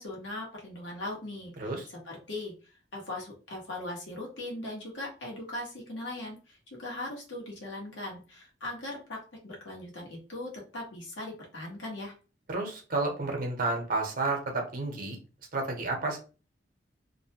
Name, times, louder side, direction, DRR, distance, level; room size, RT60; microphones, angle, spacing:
voice 1, 0.0-12.1, left 1 dB, 80° left, -2 dB, 1.2 m, -39 dB
voice 2, 12.5-15.2 15.5-16.2, right 3 dB, 50° right, 2 dB, 0.8 m, -31 dB
2.6 x 2.1 x 2.8 m, 0.35 s
head